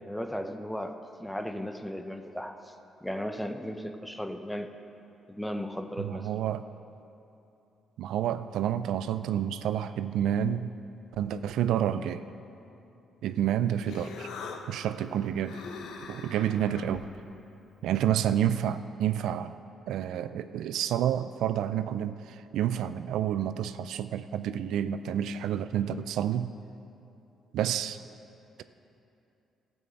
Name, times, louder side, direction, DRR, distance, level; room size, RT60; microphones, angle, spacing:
voice 1, 0.0-2.7 3.0-4.7 5.3-6.3, equal, 5° left, 7 dB, 0.7 m, -36 dB
voice 2, 6.0-6.6 8.0-10.7 11.1-12.2 13.2-14.3 14.7-15.6 16.1-17.0 17.8-19.5 19.9-26.5 27.5-28.0, right 10 dB, 80° right, 12 dB, 0.3 m, -29 dB
Human voice, 13.4-18.6, left 5 dB, 80° left, 0.9 m, -45 dB
12.5 x 6.2 x 7.7 m, 2.8 s
cardioid pair, 90°, 0 cm